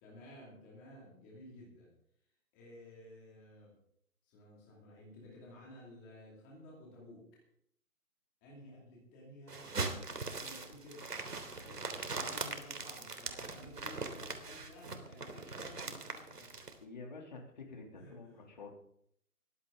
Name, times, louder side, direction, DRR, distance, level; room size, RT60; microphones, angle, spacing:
voice 1, 0.0-1.9 2.5-3.8 4.2-7.4 8.4-9.7 10.2-11.0 11.6-16.7 18.0-18.4, left 1 dB, 5° left, -4 dB, 2.5 m, -54 dB
sound 1, 9.5-16.7, right 3 dB, 90° right, 3.5 m, -41 dB
voice 2, 16.8-18.7, left 3 dB, 30° left, 1 dB, 3.2 m, -49 dB
22.0 x 15.5 x 3.9 m, 0.68 s
hypercardioid pair, 175°, 46 cm